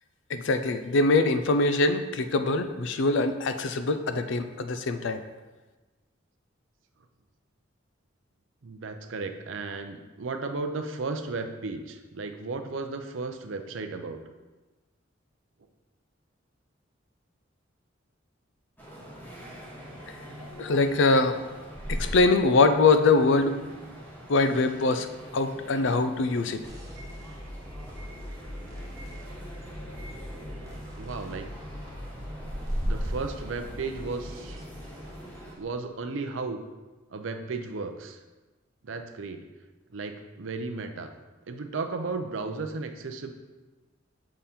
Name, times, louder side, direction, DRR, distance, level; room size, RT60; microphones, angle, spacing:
voice 1, 0.3-5.2 20.1-20.2 20.5-21.4 21.9-23.6 24.3-25.1 25.3-26.6, left 3 dB, 70° left, 9 dB, 0.4 m, -23 dB
voice 2, 8.6-14.2 31.0-31.5 32.1-32.3 32.8-34.6 35.6-36.6 37.1-38.2 38.8-39.4 39.9-41.1 41.5-43.3, right 3 dB, 75° right, 6 dB, 0.6 m, -34 dB
sound 1, 18.8-35.5, equal, 10° left, 1.1 m, -39 dB
sound 2, 26.6-35.6, equal, 20° right, 1.0 m, -42 dB
6.9 x 3.7 x 4.3 m, 1.2 s
head